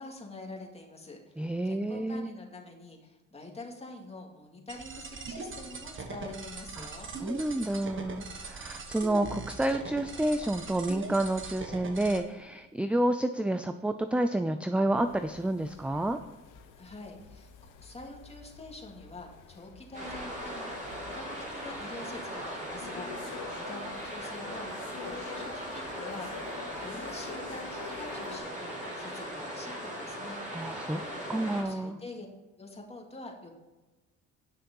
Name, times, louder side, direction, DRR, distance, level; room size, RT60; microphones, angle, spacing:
voice 1, 0.0-7.1 16.8-32.3 32.6-33.5, left 2 dB, 20° left, 0 dB, 2.4 m, -46 dB
voice 2, 1.4-2.3 6.8-6.9 7.2-16.2 30.5-32.0, right 1 dB, 5° right, 9 dB, 0.4 m, -29 dB
sound 1, 4.7-12.2, right 4 dB, 40° right, 1.6 m, -41 dB
sound 2, 15.0-28.4, left 6 dB, 85° left, 1.2 m, -48 dB
sound 3, 19.9-31.6, equal, 25° right, 3.7 m, -39 dB
9.5 x 6.4 x 5.5 m, 1.2 s
cardioid pair, 90°, 30 cm